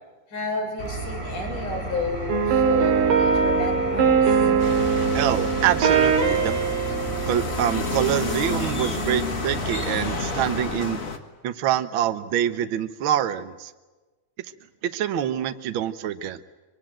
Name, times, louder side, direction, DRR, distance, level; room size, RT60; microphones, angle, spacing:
voice 1, 0.3-4.5, left 3 dB, 75° left, 1 dB, 7.7 m, -31 dB
Engine, 0.8-10.6, right 2 dB, 20° right, 6.3 m, -33 dB
sound 1, 2.3-7.9, right 6 dB, 85° right, 3.8 m, -22 dB
sound 2, 4.6-11.2, left 4 dB, 35° left, 1.4 m, -31 dB
voice 2, 5.1-6.5 7.3-11.0 11.4-13.7 14.8-16.4, right 10 dB, 70° right, 10 dB, 1.2 m, -25 dB
24.5 x 23.5 x 8.9 m, 1.2 s
omnidirectional pair, 3.6 m